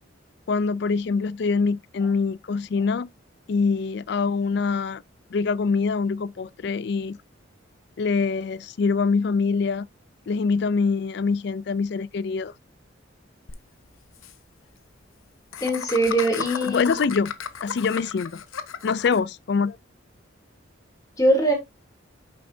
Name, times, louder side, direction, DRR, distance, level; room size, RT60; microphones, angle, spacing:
voice 1, 0.5-3.1 3.5-5.0 5.3-7.2 8.0-9.9 10.3-12.5 16.6-17.3 17.6-18.4 18.8-19.8, left 4 dB, 55° left, 0.4 m, -24 dB
Laughter, 13.5-13.6 13.8-13.9 14.1-14.3 15.5-19.2, left 6 dB, 85° left, 0.9 m, -33 dB
voice 2, 15.6-17.0 21.2-21.5, right 1 dB, 15° left, 2.9 m, -21 dB
9.8 x 6.9 x 2.7 m
head